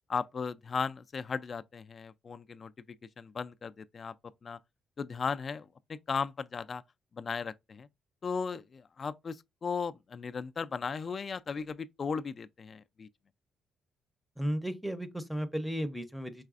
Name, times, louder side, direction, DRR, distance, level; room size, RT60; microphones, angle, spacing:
voice 1, 0.1-2.7 3.2-4.1 4.4-4.6 5.0-6.8 7.1-7.9 8.2-13.1, left 5 dB, 40° left, 0.3 m, -36 dB
voice 2, 14.4-16.4, equal, ahead, 0.6 m, -34 dB
4.8 x 3.2 x 2.4 m
cardioid pair, 90°, 0 cm